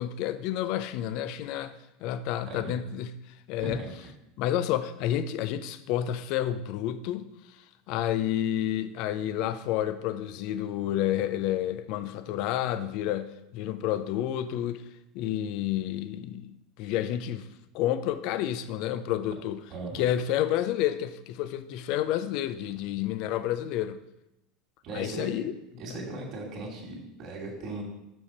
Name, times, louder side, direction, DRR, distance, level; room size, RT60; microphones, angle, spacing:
voice 1, 0.0-3.1 3.5-3.8 4.4-14.8 15.1-17.5 17.7-19.6 19.9-24.0 24.9-25.5 25.9-26.0, left 11 dB, 60° left, 0.5 m, -30 dB
voice 2, 2.4-2.8 3.6-3.9 19.7-20.0 24.8-25.3 25.8-27.8, right 2 dB, 50° right, 2.5 m, -37 dB
6.4 x 6.0 x 4.3 m
hypercardioid pair, 85°, 0 cm